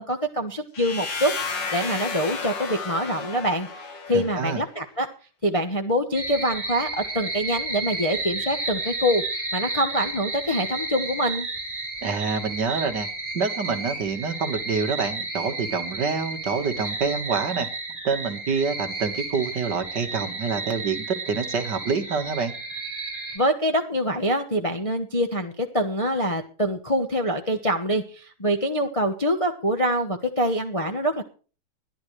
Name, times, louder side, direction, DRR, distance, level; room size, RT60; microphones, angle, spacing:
voice 1, 0.0-3.7 4.1-5.1 5.4-11.5 23.3-31.2, equal, 25° left, 4 dB, 0.8 m, -25 dB
sound 1, 0.7-4.6, left 4 dB, 60° left, 2.5 m, -32 dB
voice 2, 4.1-4.6 12.0-13.1 13.3-17.7 18.0-22.5, right 5 dB, 55° right, 6 dB, 2.1 m, -27 dB
sound 2, 6.1-23.4, right 3 dB, 10° right, 5.3 m, -32 dB
21.0 x 12.0 x 3.2 m, 0.38 s
omnidirectional pair, 2.3 m